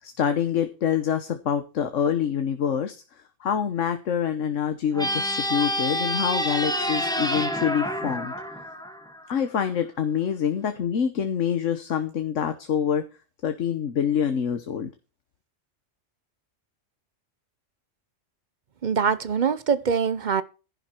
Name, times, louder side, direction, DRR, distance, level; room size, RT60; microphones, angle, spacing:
voice 1, 0.0-3.0 3.4-8.3 9.3-13.0 13.4-14.9, left 8 dB, 75° left, 1.3 m, -26 dB
sound 1, 4.9-9.4, equal, 5° left, 1.6 m, -28 dB
voice 2, 18.8-20.4, right 6 dB, 45° right, 0.7 m, -23 dB
11.0 x 11.0 x 4.4 m
omnidirectional pair, 1.3 m